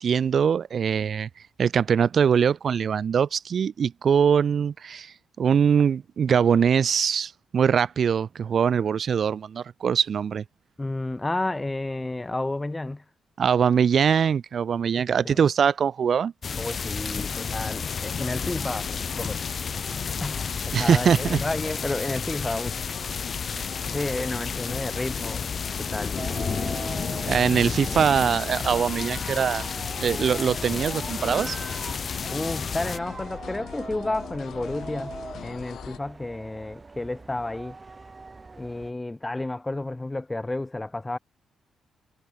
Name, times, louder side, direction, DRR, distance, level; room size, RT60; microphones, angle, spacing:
voice 1, 0.0-1.3 1.6-10.4 13.4-16.3 20.7-21.4 27.3-29.7 30.0-31.6, right 7 dB, 40° right, 0.6 m, -22 dB
voice 2, 10.8-13.0 15.2-15.4 16.6-19.5 20.2-22.8 23.8-26.2 32.3-35.2 35.4-37.8 38.6-41.2, left 2 dB, 10° left, 1.0 m, -31 dB
sound 1, 16.4-33.0, left 6 dB, 35° left, 0.8 m, -31 dB
sound 2, 17.3-36.0, left 9 dB, 60° left, 5.9 m, -41 dB
sound 3, 26.2-38.9, right 3 dB, 20° right, 7.6 m, -41 dB
cardioid pair, 165°, 0 cm